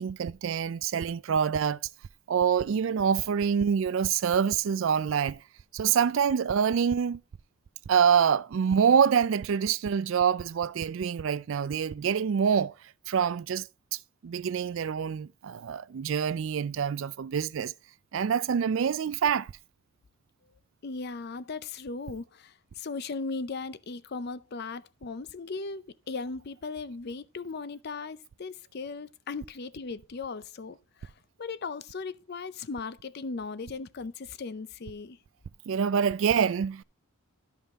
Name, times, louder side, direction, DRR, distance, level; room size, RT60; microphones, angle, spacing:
voice 1, 0.0-1.8 2.3-5.4 5.7-7.2 7.9-12.7 13.1-17.7 18.1-19.5 35.7-36.8, right 7 dB, 60° right, 0.3 m, -26 dB
voice 2, 20.8-31.1 31.4-35.2, left 4 dB, 45° left, 0.5 m, -37 dB
12.0 x 5.6 x 3.5 m
head